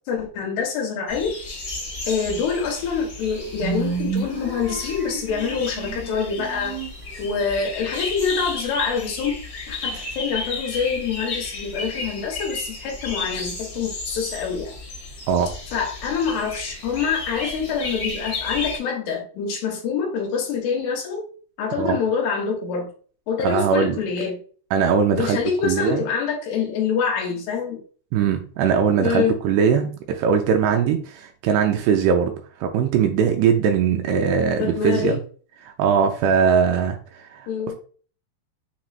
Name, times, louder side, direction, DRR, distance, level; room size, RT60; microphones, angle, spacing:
voice 1, 0.1-1.3 2.1-6.8 7.2-9.3 9.7-14.7 15.7-21.2 21.6-22.9 23.3-24.4 25.1-27.8 29.0-29.4 34.6-35.2 37.5-37.7, left 6 dB, 75° left, 0 dB, 3.0 m, -25 dB
sound 1, 1.1-18.8, left 3 dB, 45° left, 1.1 m, -33 dB
sound 2, 2.8-2.9 3.2-7.2, right 5 dB, 65° right, 2.3 m, -31 dB
voice 2, 23.4-24.0 24.7-25.4 25.6-26.0 28.1-32.3 32.6-35.1 35.6-37.5, right 7 dB, 80° right, 4 dB, 2.5 m, -20 dB
7.1 x 3.0 x 2.4 m, 0.41 s
omnidirectional pair, 5.0 m